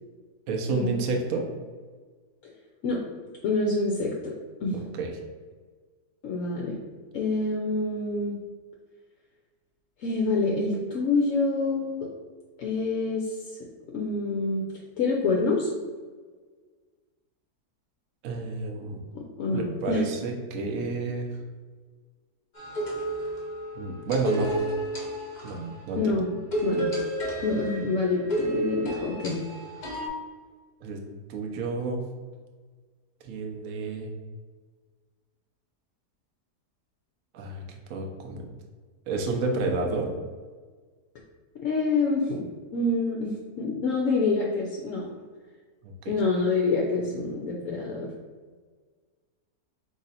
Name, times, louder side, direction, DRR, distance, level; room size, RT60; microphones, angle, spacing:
voice 1, 0.5-1.5 4.7-5.1 18.2-19.0 19.5-21.3 23.7-24.5 25.4-26.1 30.8-31.0 31.3-32.0 33.2-34.1 37.3-37.6 37.9-38.5 39.1-40.1 45.8-46.2, right 3 dB, 65° right, 2 dB, 0.8 m, -30 dB
voice 2, 3.4-4.3 4.6-5.0 6.2-6.8 7.1-8.4 10.0-12.1 12.6-13.6 13.9-14.7 15.0-15.7 19.1-20.0 26.0-26.3 26.6-26.9 27.4-29.4 41.6-43.3 43.6-45.1 46.1-48.1, left 3 dB, 65° left, -1 dB, 0.8 m, -27 dB
sound 1, 22.5-25.8 26.5-30.1, right 1 dB, 35° left, 0.8 m, -31 dB
3.9 x 3.0 x 4.1 m, 1.5 s
omnidirectional pair, 1.8 m